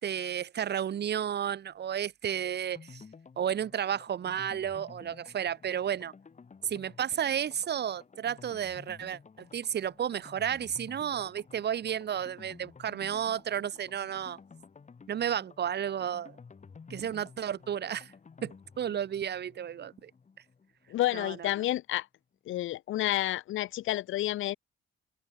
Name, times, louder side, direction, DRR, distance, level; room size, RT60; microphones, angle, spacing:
voice 1, 0.0-3.0 3.4-6.1 6.6-14.4 15.1-16.4 16.9-18.1 18.4-20.1 21.1-21.5, right 9 dB, 55° right, 2.0 m, -32 dB
sound 1, 2.7-21.4 21.6-21.7 22.0-22.1, left 5 dB, 35° left, 7.9 m, -53 dB
voice 2, 20.9-22.0 22.5-24.6, left 15 dB, 85° left, 1.6 m, -30 dB
open air
cardioid pair, 90°, 20 cm